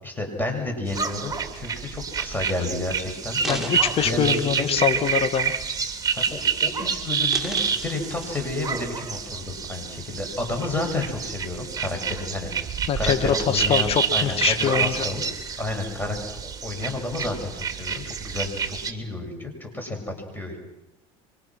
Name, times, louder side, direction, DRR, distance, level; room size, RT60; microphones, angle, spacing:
voice 1, 0.0-3.7 4.0-4.3 4.6-4.7 6.1-12.7 13.0-15.2 15.6-20.6, left 2 dB, 15° left, 3 dB, 7.4 m, -31 dB
sound 1, 0.9-18.9, right 6 dB, 25° right, 2.6 m, -28 dB
voice 2, 3.4-5.5 12.9-15.1, left 8 dB, 45° left, 9 dB, 2.1 m, -24 dB
sound 2, 3.4-5.3 5.6-5.9 6.2-6.7 7.0-8.8 9.3-9.4, right 2 dB, 5° right, 5.2 m, -38 dB
27.5 x 25.0 x 6.3 m, 0.92 s
supercardioid pair, 100°, 14 cm